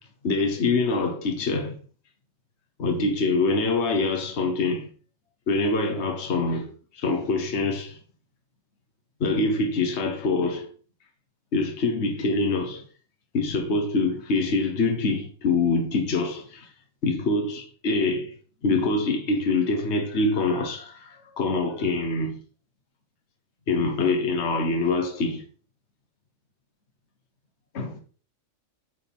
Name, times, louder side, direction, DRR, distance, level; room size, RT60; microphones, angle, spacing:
voice 1, 0.2-1.8 2.8-4.9 5.5-6.7 6.9-8.0 9.2-10.7 11.5-12.8 13.3-16.7 17.0-18.3 18.6-22.4 23.7-25.4 27.7-28.0, left 3 dB, 60° left, 1.5 m, -25 dB
9.1 x 6.7 x 3.5 m
omnidirectional pair, 1.3 m